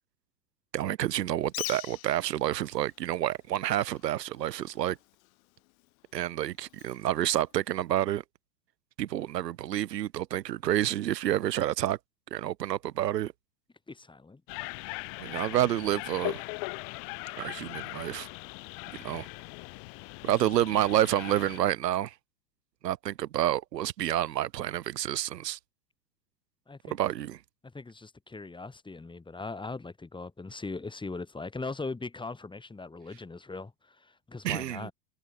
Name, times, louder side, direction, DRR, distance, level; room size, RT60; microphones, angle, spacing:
voice 1, 0.7-5.0 6.1-8.2 9.0-12.0 12.3-13.3 15.2-16.4 17.4-18.3 18.9-19.3 20.2-22.1 22.8-25.6 26.8-27.4 34.4-34.9, right 12 dB, 75° right, 1.8 m, -29 dB
Bird, 1.4-8.1, left 23 dB, 55° left, 1.7 m, -46 dB
voice 2, 13.9-14.4 26.7-27.0 27.6-34.9, left 3 dB, 10° left, 4.5 m, -40 dB
sound 1, 14.5-21.6, left 40 dB or more, 35° left, 0.5 m, -39 dB
hypercardioid pair, 105°, 49 cm